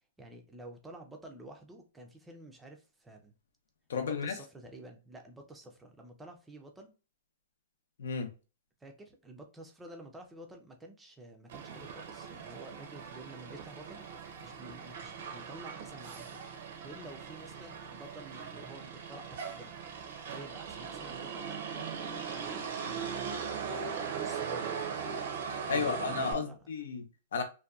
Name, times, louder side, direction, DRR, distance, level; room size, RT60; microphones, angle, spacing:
voice 1, 0.2-3.3 3.9-6.9 8.8-14.0 14.4-16.4 16.8-19.8 20.3-23.2 23.7-25.0 25.7-26.6, right 1 dB, 10° right, 0.4 m, -50 dB
voice 2, 3.9-4.4 8.0-8.3 25.7-27.4, left 5 dB, 80° left, 0.6 m, -33 dB
Motor vehicle (road), 11.5-26.3, right 6 dB, 55° right, 0.6 m, -40 dB
2.6 x 2.2 x 2.3 m
hypercardioid pair, 160°, 0 cm